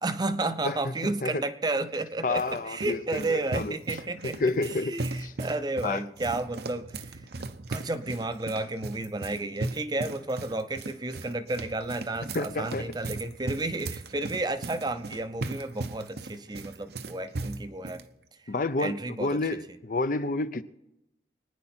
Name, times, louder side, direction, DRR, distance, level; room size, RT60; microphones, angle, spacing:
voice 1, 0.0-7.2 7.7-18.0 18.8-19.6, right 2 dB, 25° right, 0.6 m, -32 dB
sound 1, 1.9-18.0, right 2 dB, 60° right, 0.7 m, -38 dB
voice 2, 2.2-3.7 4.4-4.9 5.2-5.3 5.8-6.0 12.3-12.9 18.5-20.6, left 3 dB, 50° left, 0.6 m, -29 dB
23.5 x 9.8 x 4.3 m
head